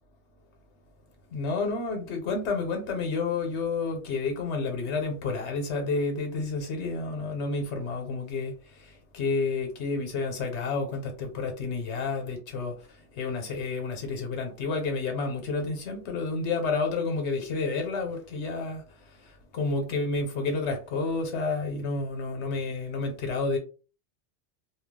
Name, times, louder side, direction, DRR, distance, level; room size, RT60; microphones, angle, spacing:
voice 1, 1.3-23.6, left 4 dB, 90° left, 1.0 m, -30 dB
2.3 x 2.2 x 3.5 m
omnidirectional pair, 1.1 m